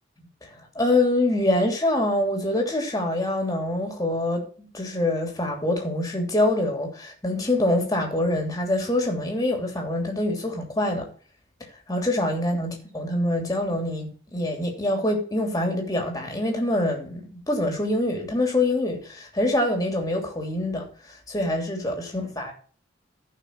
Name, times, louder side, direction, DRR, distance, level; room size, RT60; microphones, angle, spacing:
voice 1, 0.7-11.1 11.9-20.9 21.3-22.5, left 1 dB, 20° left, 2.9 m, -25 dB
14.0 x 5.8 x 4.6 m
head